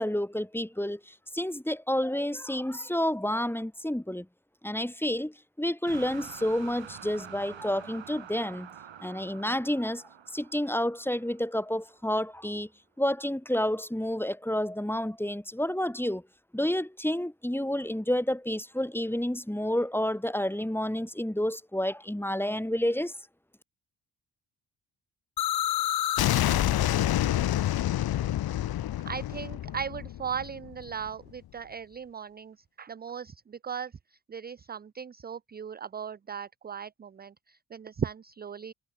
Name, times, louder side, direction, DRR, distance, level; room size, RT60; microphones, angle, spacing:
voice 1, 0.0-4.3 4.6-8.7 9.0-10.0 10.3-12.7 13.0-16.2 16.5-23.1, left 1 dB, 5° left, 2.1 m, -30 dB
sound 1, 5.8-11.9, right 9 dB, 70° right, 6.0 m, -47 dB
sound 2, 25.4-31.1, left 13 dB, 50° left, 0.6 m, -27 dB
voice 2, 29.1-33.9 34.3-38.7, right 7 dB, 20° right, 0.4 m, -37 dB
supercardioid pair, 45°, 47 cm